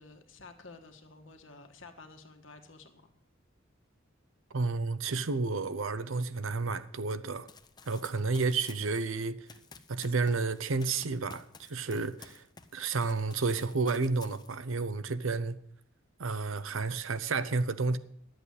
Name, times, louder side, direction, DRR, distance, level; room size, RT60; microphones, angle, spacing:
voice 1, 0.0-3.1, left 3 dB, 75° left, 1.6 m, -52 dB
voice 2, 4.5-7.5 7.9-9.4 9.9-12.4 12.7-15.6 16.2-18.0, right 4 dB, 90° right, 0.8 m, -31 dB
Run, 7.5-12.7 13.0-14.8, left 5 dB, 20° left, 0.7 m, -53 dB
11.0 x 8.0 x 8.2 m
head